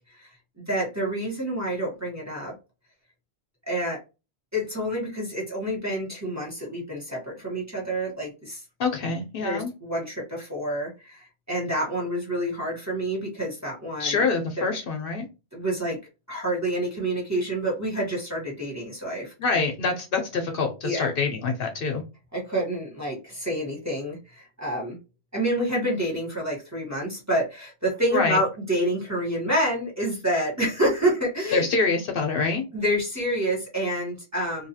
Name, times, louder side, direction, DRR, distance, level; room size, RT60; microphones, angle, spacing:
voice 1, 0.6-2.5 3.7-4.0 4.5-8.6 9.4-14.2 14.6-14.7 15.5-16.0 16.3-19.3 20.8-21.1 22.3-25.0 25.3-31.7 32.7-34.7, right 1 dB, 15° right, -3 dB, 0.9 m, -28 dB
voice 2, 8.8-9.7 14.0-15.2 19.4-22.0 28.1-28.4 31.5-32.6, left 4 dB, 65° left, 4 dB, 0.7 m, -25 dB
2.6 x 2.3 x 2.7 m, 0.28 s
omnidirectional pair, 1.1 m